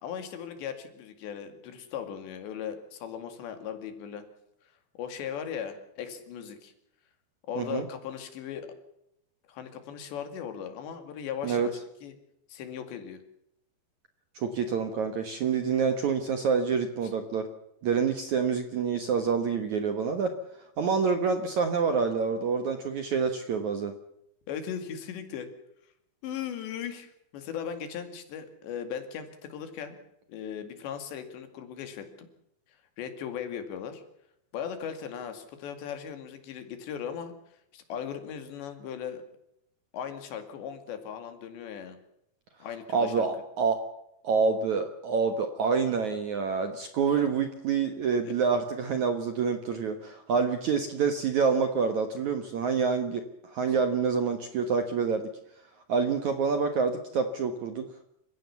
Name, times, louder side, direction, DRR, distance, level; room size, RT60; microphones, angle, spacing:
voice 1, 0.0-4.2 5.0-6.7 7.5-8.7 9.5-11.7 12.0-12.1 12.5-13.2 17.0-17.1 24.5-25.5 26.2-30.0 30.3-32.3 33.0-34.0 34.5-37.3 37.7-39.2 39.9-42.0 42.6-43.3 47.1-47.2 48.2-48.3, left 8 dB, 75° left, 8 dB, 4.4 m, -38 dB
voice 2, 7.6-7.9 11.4-11.7 14.4-17.5 17.8-20.4 20.8-23.9 42.9-43.8 44.2-55.3 55.9-57.9, right 5 dB, 60° right, 8 dB, 2.0 m, -27 dB
28.0 x 16.0 x 7.1 m, 0.78 s
omnidirectional pair, 5.1 m